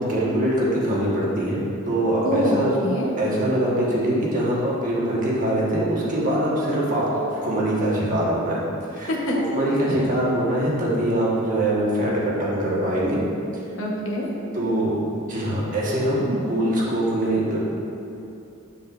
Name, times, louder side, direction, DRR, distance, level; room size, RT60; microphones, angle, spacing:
voice 1, 0.0-2.7 3.1-8.6 8.9-9.1 9.5-13.2 14.5-14.9 15.3-17.6, right 1 dB, 40° right, -6 dB, 1.3 m, -23 dB
voice 2, 2.2-3.1 9.1-9.4 13.7-14.3, equal, 70° left, -2 dB, 1.0 m, -25 dB
7.5 x 6.8 x 2.5 m, 2.7 s
head